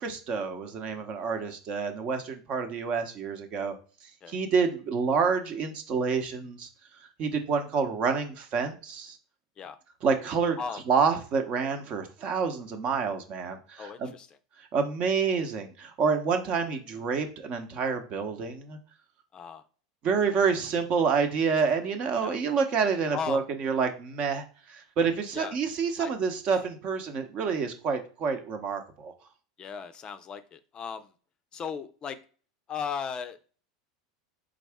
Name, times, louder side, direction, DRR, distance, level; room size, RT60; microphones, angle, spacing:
voice 1, 0.0-3.7 4.3-6.7 7.2-9.2 10.0-10.6 10.9-14.1 14.7-18.8 20.0-29.1, right 5 dB, 45° right, 7 dB, 0.9 m, -28 dB
voice 2, 13.8-14.3 19.3-19.6 22.2-22.4 23.1-23.4 25.3-25.6 26.0-26.1 26.5-26.7 29.6-31.1 31.5-32.2 32.7-33.4, left 6 dB, 30° left, 11 dB, 0.5 m, -36 dB
4.0 x 3.7 x 3.5 m, 0.39 s
hypercardioid pair, 100°, 3 cm